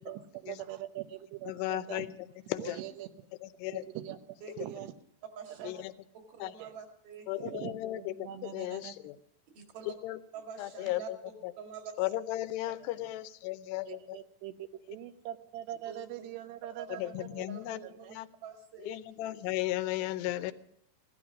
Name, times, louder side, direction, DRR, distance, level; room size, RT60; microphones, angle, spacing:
voice 1, 0.0-2.1 2.6-3.1 3.7-4.9 5.5-5.8 6.6-6.7 7.4-8.9 10.8-10.9 13.8-17.5 17.8-18.2, right 12 dB, 85° right, 10 dB, 3.0 m, -43 dB
voice 2, 1.5-2.1 2.5-2.8 3.4-3.8 5.6-5.9 6.4-6.5 7.3-9.2 9.9-10.2 10.6-11.2 11.4-11.5 12.0-14.2 17.0-17.8 18.1-18.3 18.9-20.5, left 15 dB, 90° left, 12 dB, 2.8 m, -35 dB
voice 3, 5.4-5.7 6.1-7.5 9.6-9.9 10.3-11.9 15.9-16.0 16.8-17.0 17.5-18.1 18.4-19.3, right 6 dB, 65° right, 4 dB, 3.8 m, -46 dB
16.5 x 12.0 x 6.1 m, 0.73 s
omnidirectional pair, 4.7 m